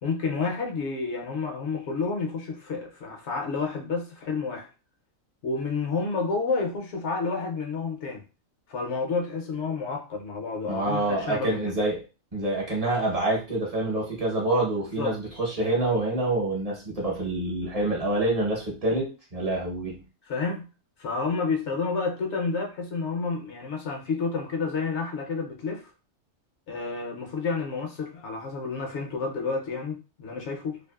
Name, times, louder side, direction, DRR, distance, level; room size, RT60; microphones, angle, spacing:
voice 1, 0.0-4.7 5.4-8.2 8.7-11.7 14.8-15.2 20.2-20.7 21.0-25.9 26.7-30.8, left 4 dB, 65° left, 2 dB, 0.8 m, -30 dB
voice 2, 10.7-12.0 12.3-20.0, right 2 dB, 35° right, -3 dB, 0.8 m, -27 dB
2.6 x 2.4 x 2.3 m, 0.32 s
omnidirectional pair, 1.4 m